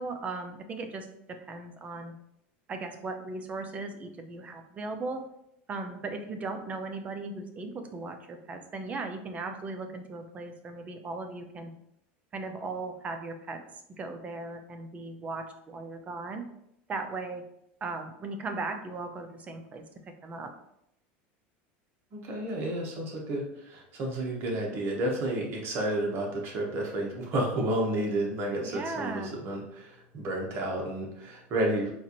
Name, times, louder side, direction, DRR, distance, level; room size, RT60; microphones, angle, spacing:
voice 1, 0.0-2.1 2.7-5.2 5.7-11.7 12.3-16.5 16.9-17.4 17.8-19.8 20.2-20.5 28.6-29.3, right 3 dB, 25° right, 6 dB, 0.5 m, -37 dB
voice 2, 22.1-31.9, right 1 dB, 45° right, 0 dB, 1.0 m, -31 dB
4.2 x 2.5 x 2.9 m, 0.78 s
supercardioid pair, 130°, 6 cm